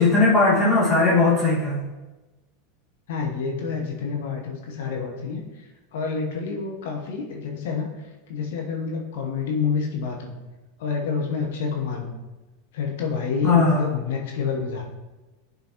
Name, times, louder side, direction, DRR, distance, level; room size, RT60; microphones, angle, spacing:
voice 1, 0.0-1.8 13.4-13.8, left 3 dB, 20° left, -7 dB, 1.7 m, -18 dB
voice 2, 3.1-5.6 5.9-7.9 8.3-10.3 10.8-12.1 12.7-14.8, left 5 dB, 65° left, 0 dB, 0.9 m, -28 dB
10.0 x 3.9 x 2.9 m, 1.2 s
figure-of-eight pair, 85°, 0 cm